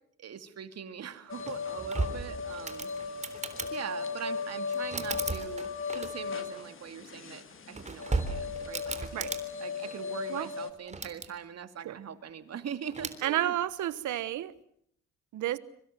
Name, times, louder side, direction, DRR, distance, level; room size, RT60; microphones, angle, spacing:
voice 1, 0.2-3.3 3.7-9.3 9.6-13.6, right 8 dB, 55° right, 2.5 m, -42 dB
sound 1, 1.3-10.7, left 5 dB, 45° left, 2.5 m, -37 dB
sound 2, 1.4-3.7 4.7-6.4 7.5-9.4 10.7-11.3 12.9-13.2, right 3 dB, 25° right, 3.6 m, -36 dB
voice 2, 13.2-14.5 15.3-15.6, right 13 dB, 75° right, 1.3 m, -31 dB
25.5 x 24.0 x 7.7 m
cardioid pair, 90°, 30 cm